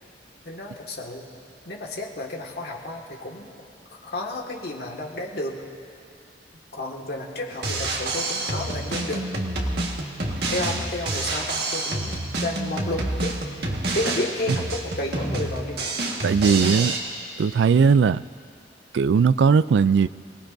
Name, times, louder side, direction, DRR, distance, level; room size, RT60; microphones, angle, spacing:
voice 1, 0.4-1.3 1.6-3.5 3.9-5.7 6.7-9.2 10.5-13.4 13.9-15.9, left 1 dB, 60° left, 0 dB, 1.8 m, -32 dB
Drum kit, 7.5-17.0, right 2 dB, 60° right, 1.6 m, -28 dB
voice 2, 16.2-17.0 17.4-18.2 18.9-20.1, right 5 dB, 75° right, 17 dB, 0.3 m, -18 dB
28.5 x 18.5 x 2.6 m, 2.4 s
head